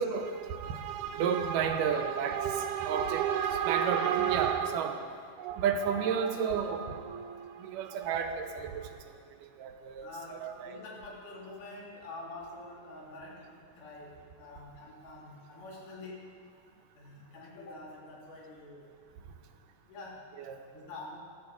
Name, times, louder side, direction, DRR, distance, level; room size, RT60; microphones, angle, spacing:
voice 1, 0.0-5.1 5.4-9.0 9.6-10.8 20.4-20.6, right 7 dB, 85° right, 6 dB, 2.6 m, -31 dB
voice 2, 10.0-16.4 17.0-18.9 19.9-20.3 20.7-21.2, left 2 dB, 85° left, -3 dB, 4.1 m, -46 dB
15.5 x 13.5 x 4.8 m, 2.1 s
omnidirectional pair, 3.7 m